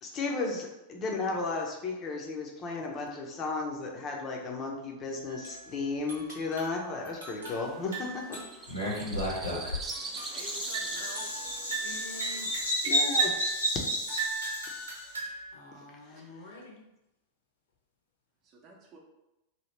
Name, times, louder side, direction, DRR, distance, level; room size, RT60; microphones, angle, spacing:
voice 1, 0.0-8.4 12.8-13.3 16.1-16.2, left 3 dB, 30° left, 0 dB, 0.6 m, -34 dB
sound 1, 5.3-5.6 6.1-8.7 9.0-9.1 9.9-10.4 10.7-13.6 14.1-15.5, right 4 dB, 75° right, 1.0 m, -38 dB
sound 2, 7.6-12.8, right 3 dB, 20° right, 0.4 m, -43 dB
Bird vocalization bird call bird song, 8.7-15.0, equal, 85° left, 1.2 m, -32 dB
voice 2, 10.0-11.3 18.4-19.0, right 3 dB, 35° right, -1 dB, 0.8 m, -50 dB
voice 3, 11.8-12.5 15.5-16.8, left 1 dB, 65° left, 0 dB, 0.8 m, -47 dB
2.8 x 2.7 x 3.1 m, 0.95 s
figure-of-eight pair, 90°, 0 cm